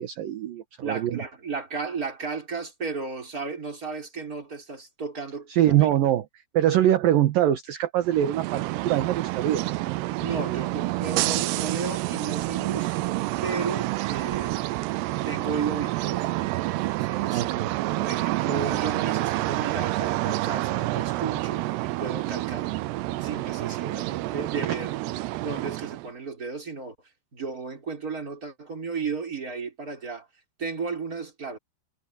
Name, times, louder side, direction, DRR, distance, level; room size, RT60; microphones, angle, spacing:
voice 1, 0.0-1.2 5.5-6.2 6.5-10.0 17.2-18.1 23.6-24.0 24.7-24.8, right 12 dB, 65° right, 2.6 m, -24 dB
voice 2, 0.8-6.0 10.2-14.8 15.2-16.3 16.6-17.4 18.0-22.7 23.2-25.0 25.4-27.0 27.3-30.3 30.6-31.6, right 5 dB, 20° right, 5.2 m, -34 dB
sound 1, 8.0-26.1, right 18 dB, 85° right, 2.6 m, -28 dB
omnidirectional pair, 5.1 m